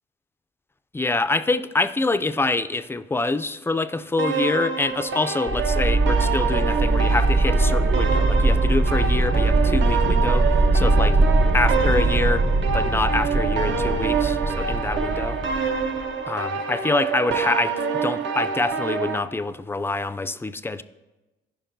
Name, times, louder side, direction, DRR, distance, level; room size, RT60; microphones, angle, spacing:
voice 1, 0.9-11.2 11.5-12.5 12.7-15.4 16.3-20.8, left 3 dB, 10° left, 12 dB, 0.3 m, -26 dB
sound 1, 4.2-19.2, right 5 dB, 70° right, 0.7 m, -27 dB
sound 2, 5.5-16.1, right 2 dB, 35° right, 0.7 m, -21 dB
14.5 x 5.3 x 2.6 m, 1.1 s
cardioid pair, 90°, 20 cm